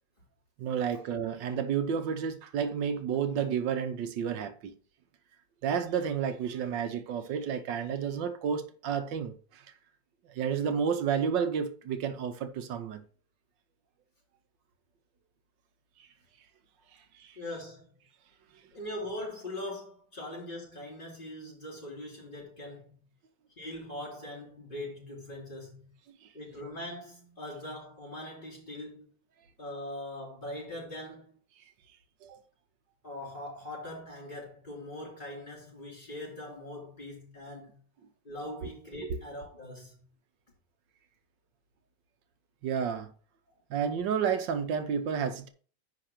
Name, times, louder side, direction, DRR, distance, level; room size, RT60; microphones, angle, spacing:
voice 1, 0.6-4.7 5.6-9.6 10.3-13.0 17.2-17.4 26.2-26.3 32.2-32.4 39.0-39.2 42.6-43.1 43.7-45.5, right 7 dB, 85° right, 1.5 m, -31 dB
voice 2, 17.4-17.9 18.7-23.0 23.6-25.8 26.3-29.1 29.6-31.3 33.0-37.8 38.2-40.0, left 1 dB, 25° left, 3.9 m, -41 dB
10.0 x 3.5 x 5.8 m
omnidirectional pair, 1.9 m